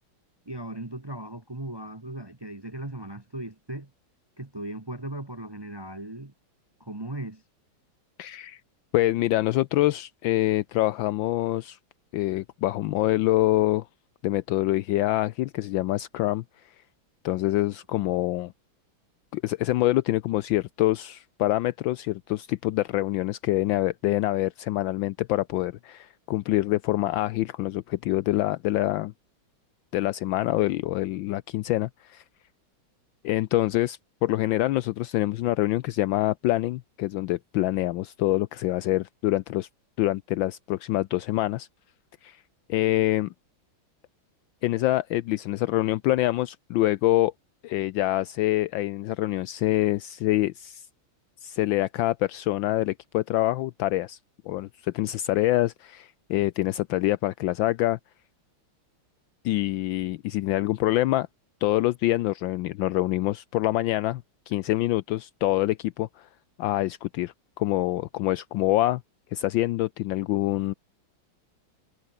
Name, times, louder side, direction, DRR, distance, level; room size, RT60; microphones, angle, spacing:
voice 1, 0.5-3.9 4.4-6.3 6.8-7.4, right 1 dB, 15° right, 0.9 m, -37 dB
voice 2, 8.2-8.6 8.9-11.8 12.1-13.9 14.2-16.4 17.2-18.5 19.3-29.1 29.9-32.2 33.2-39.7 40.0-41.7 42.2-42.4 42.7-43.3 44.6-47.3 47.6-50.8 51.4-54.2 54.5-58.0 59.4-61.3 61.6-66.3 66.6-69.0 69.3-70.7, left 16 dB, 75° left, 1.3 m, -25 dB
omnidirectional pair, 2.3 m